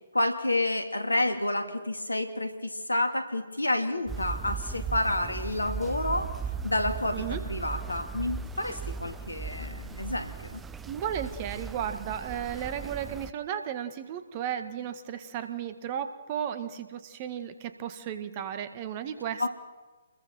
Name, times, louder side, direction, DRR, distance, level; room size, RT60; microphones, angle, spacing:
voice 1, 0.1-6.3 6.6-10.6 19.4-19.5, left 1 dB, 90° left, 7 dB, 2.4 m, -29 dB
sound 1, 4.1-13.3, right 5 dB, 10° right, 0.7 m, -37 dB
voice 2, 10.9-19.5, right 9 dB, 35° right, 9 dB, 1.8 m, -34 dB
29.0 x 22.0 x 4.5 m, 1.3 s
figure-of-eight pair, 135°, 0 cm